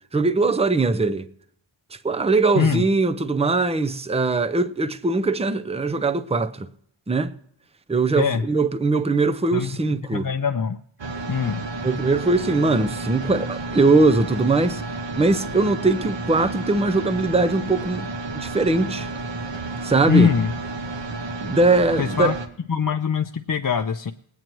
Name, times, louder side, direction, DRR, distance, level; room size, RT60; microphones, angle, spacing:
voice 1, 0.1-1.3 1.9-6.7 7.1-7.3 7.9-10.3 11.8-14.8 15.2-18.1 18.3-19.1 19.8-20.3 21.4-22.3, right 3 dB, 15° right, 0.6 m, -21 dB
voice 2, 10.1-10.8 11.3-11.6 20.1-20.5 22.0-22.4 22.7-24.1, left 6 dB, 45° left, 0.5 m, -22 dB
sound 1, 11.0-22.5, right 3 dB, 65° right, 1.3 m, -31 dB
21.0 x 9.1 x 3.0 m
wide cardioid pair, 55°, 47 cm